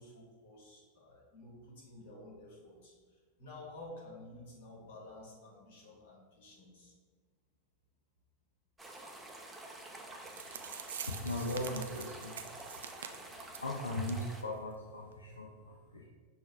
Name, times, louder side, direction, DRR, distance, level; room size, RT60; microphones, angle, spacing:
voice 1, 0.0-6.9 10.4-10.9, left 1 dB, 50° left, -3 dB, 1.5 m, -52 dB
sound 1, 8.8-14.4, right 1 dB, 10° right, 0.5 m, -49 dB
sound 2, 10.0-10.1 10.3-13.7 14.0-14.2 14.5-14.6 15.1-15.2, right 8 dB, 60° right, 0.3 m, -45 dB
voice 2, 11.1-12.4 13.6-16.0, left 1 dB, 75° left, -2 dB, 0.4 m, -38 dB
6.1 x 2.3 x 3.4 m, 1.5 s
figure-of-eight pair, 90°, 0 cm